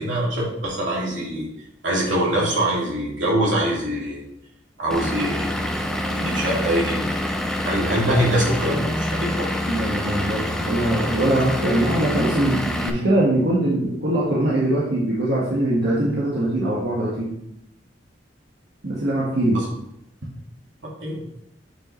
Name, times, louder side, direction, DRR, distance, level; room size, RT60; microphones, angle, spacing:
voice 1, 0.0-1.5 1.8-4.2 4.8-5.7 6.1-7.1 7.6-9.5 19.5-19.7 21.0-21.2, right 1 dB, 80° right, -4 dB, 2.6 m, -23 dB
Vehicle / Engine, 4.9-12.9, left 1 dB, 5° left, 0.6 m, -26 dB
voice 2, 9.7-17.3 18.8-19.6, right 1 dB, 60° right, -7 dB, 1.6 m, -22 dB
8.5 x 5.0 x 3.2 m, 0.78 s
head